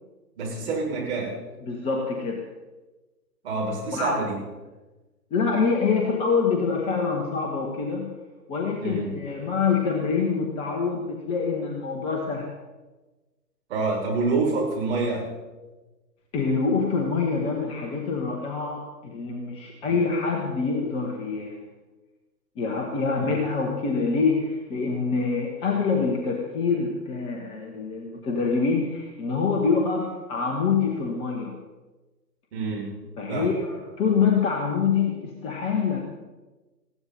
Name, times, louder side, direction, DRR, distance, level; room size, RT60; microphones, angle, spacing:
voice 1, 0.4-1.4 3.4-4.3 8.8-9.1 13.7-15.3 19.9-20.0 23.1-23.3 32.5-32.9 33.3-33.5, right 3 dB, 40° right, -3 dB, 6.9 m, -27 dB
voice 2, 1.6-2.4 3.9-4.1 5.3-8.1 8.5-12.5 16.3-21.6 22.6-31.6 33.2-36.0, left 5 dB, 10° left, 1 dB, 1.0 m, -25 dB
20.0 x 16.0 x 4.2 m, 1.2 s
figure-of-eight pair, 135°, 49 cm